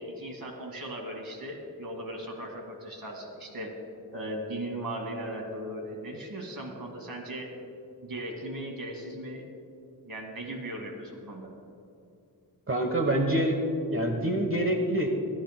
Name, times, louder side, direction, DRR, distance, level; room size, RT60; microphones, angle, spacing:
voice 1, 0.0-3.7 4.1-7.5 8.0-9.5 10.0-11.5, right 1 dB, 65° right, 2 dB, 2.1 m, -38 dB
voice 2, 12.7-13.6 13.9-15.1, right 1 dB, 35° right, 3 dB, 1.1 m, -26 dB
24.5 x 10.0 x 2.2 m, 2.5 s
wide cardioid pair, 85°, 37 cm